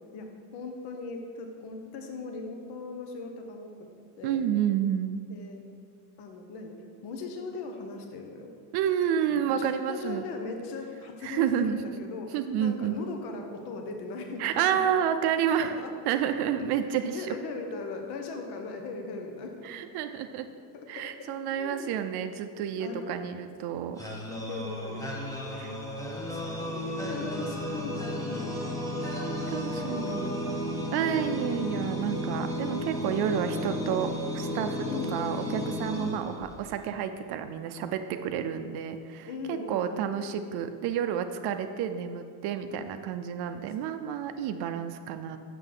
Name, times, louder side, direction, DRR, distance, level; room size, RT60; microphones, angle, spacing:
voice 1, 0.1-3.9 4.2-4.4 5.3-5.6 6.2-6.8 7.0-8.5 9.3-14.8 15.6-16.2 16.6-19.7 20.5-21.1 21.5-21.9 22.8-23.2 24.3-25.1 25.6-25.8 26.1-28.9 29.6-30.6 34.8-36.3 39.2-40.4 43.5-43.6, left 3 dB, 55° left, 3 dB, 0.9 m, -39 dB
voice 2, 4.2-5.2 8.7-10.2 11.2-11.9 12.3-13.0 14.4-15.7 16.1-17.3 19.6-20.5 20.9-24.0 25.5-25.7 29.5-30.3 30.9-45.4, right 9 dB, 55° right, 8 dB, 0.5 m, -30 dB
sound 1, 24.0-36.9, equal, 5° left, 0.9 m, -33 dB
6.7 x 6.3 x 3.8 m, 2.2 s
supercardioid pair, 110°, 48 cm